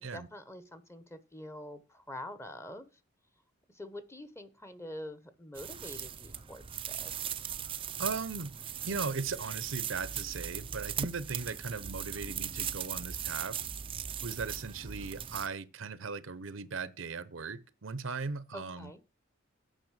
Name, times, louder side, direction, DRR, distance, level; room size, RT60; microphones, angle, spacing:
voice 1, 0.0-2.9 3.7-7.4 18.5-19.0, left 1 dB, 15° left, 1.0 m, -46 dB
sound 1, 5.5-15.5, right 8 dB, 25° right, 0.5 m, -39 dB
voice 2, 8.0-8.5 8.8-13.6 14.2-18.9, right 4 dB, 70° right, 0.8 m, -38 dB
9.1 x 5.6 x 7.4 m
head